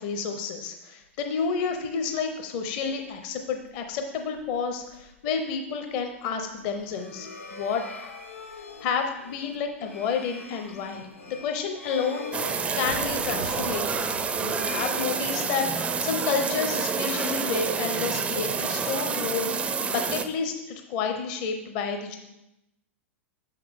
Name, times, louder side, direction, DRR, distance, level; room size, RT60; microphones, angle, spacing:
voice 1, 0.0-8.1 8.8-12.3 12.7-14.1 14.4-19.5 19.9-22.2, left 5 dB, 40° left, 5 dB, 0.7 m, -30 dB
sound 1, 1.0-17.4, right 2 dB, 85° right, 0.9 m, -50 dB
sound 2, 6.7-15.8, left 3 dB, 80° left, 1.0 m, -43 dB
sound 3, 12.3-20.2, right 5 dB, 15° right, 0.4 m, -28 dB
6.8 x 5.7 x 3.5 m, 0.91 s
figure-of-eight pair, 95°, 7 cm